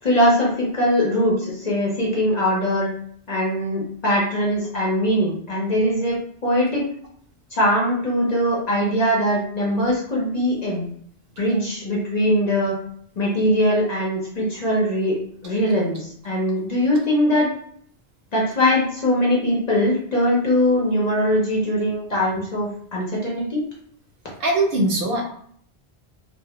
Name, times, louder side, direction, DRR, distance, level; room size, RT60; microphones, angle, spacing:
voice 1, 0.0-2.9 3.3-6.1 6.4-6.8 7.5-10.9 11.4-12.8 13.2-15.2 15.4-17.5 18.3-23.6, equal, 45° left, -4 dB, 0.7 m, -21 dB
voice 2, 24.4-25.2, right 2 dB, 65° right, 0 dB, 0.7 m, -20 dB
2.1 x 2.1 x 2.8 m, 0.62 s
omnidirectional pair, 1.1 m